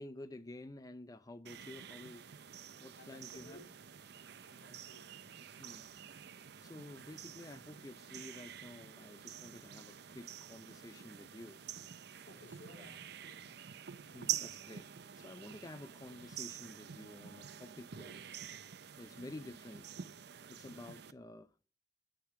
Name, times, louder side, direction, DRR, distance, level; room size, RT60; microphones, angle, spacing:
voice 1, 0.0-2.2 2.8-3.6 5.6-5.8 6.6-11.6 14.1-14.9 15.2-18.1 19.0-20.0 20.5-21.5, left 1 dB, 20° left, 0.5 m, -51 dB
sound 1, 1.4-21.1, right 10 dB, 60° right, 0.6 m, -47 dB
voice 2, 2.9-3.7 4.4-5.2 12.2-13.6, left 1 dB, 85° left, 3.5 m, -57 dB
10.5 x 9.4 x 4.8 m
head